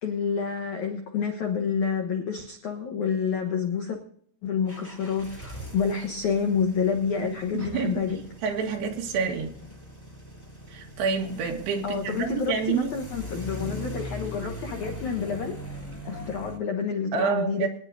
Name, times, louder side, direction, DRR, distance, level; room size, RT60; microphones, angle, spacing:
voice 1, 0.0-4.0 4.4-8.2 11.8-15.6 16.0-17.7, left 6 dB, 80° left, 3 dB, 1.7 m, -28 dB
sound 1, 4.7-16.6, equal, 5° left, 1.8 m, -41 dB
voice 2, 7.5-8.0 8.4-9.5 10.7-12.9 17.1-17.7, right 5 dB, 65° right, 2 dB, 3.5 m, -28 dB
24.0 x 10.0 x 2.7 m, 0.65 s
omnidirectional pair, 5.4 m